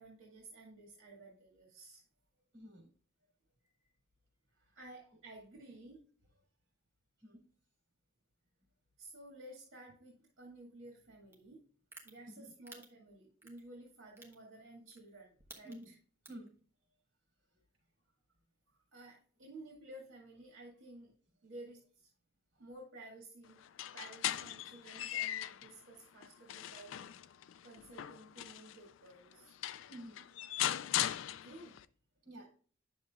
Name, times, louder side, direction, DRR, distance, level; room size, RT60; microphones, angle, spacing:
voice 1, 0.0-2.0 4.7-6.0 9.0-11.6 12.0-16.0 18.7-21.1 21.4-22.1 22.6-23.6 23.9-26.9 27.6-29.6 31.4-31.8, right 2 dB, 85° right, -2 dB, 2.1 m, -54 dB
voice 2, 2.5-2.9 7.2-7.5 12.3-12.5 15.6-16.0 16.3-16.6 29.9-30.2 32.2-32.5, equal, 65° right, 0 dB, 3.6 m, -50 dB
sound 1, 11.3-11.4 11.9-12.1 12.7-12.8 13.4-13.6 14.2-14.3 14.9-15.1 15.4-15.8 16.2-16.5, right 2 dB, 10° right, 1.1 m, -51 dB
sound 2, 23.6-25.7 26.2-28.8 29.3-29.4 29.6-31.8, left 12 dB, 80° left, 0.4 m, -38 dB
9.4 x 6.5 x 2.4 m, 0.43 s
head